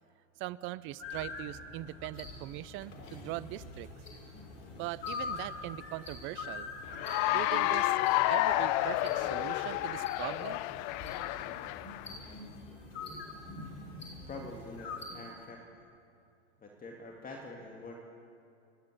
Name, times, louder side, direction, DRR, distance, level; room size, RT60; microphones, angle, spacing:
voice 1, 0.4-3.9 4.7-6.7 7.3-8.0 8.3-10.6, right 16 dB, 35° right, 18 dB, 0.5 m, -41 dB
sound 1, 1.0-15.0, left 4 dB, 65° left, 3.5 m, -45 dB
sound 2, 2.1-15.3, left 1 dB, 80° left, 6.4 m, -52 dB
Cheering / Applause, 6.9-12.1, left 16 dB, 45° left, 0.7 m, -30 dB
voice 2, 14.3-15.6 16.6-17.9, left 2 dB, 20° left, 0 dB, 2.4 m, -45 dB
30.0 x 10.5 x 8.5 m, 2.5 s
hypercardioid pair, 95°, 37 cm